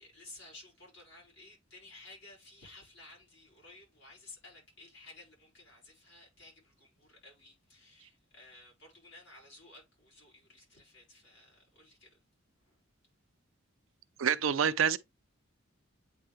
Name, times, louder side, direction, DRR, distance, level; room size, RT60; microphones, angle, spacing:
voice 1, 0.0-12.2 12.7-12.8, left 2 dB, 60° left, 4.7 m, -55 dB
voice 2, 14.2-15.0, right 7 dB, 70° right, 0.5 m, -27 dB
8.6 x 3.3 x 3.4 m
head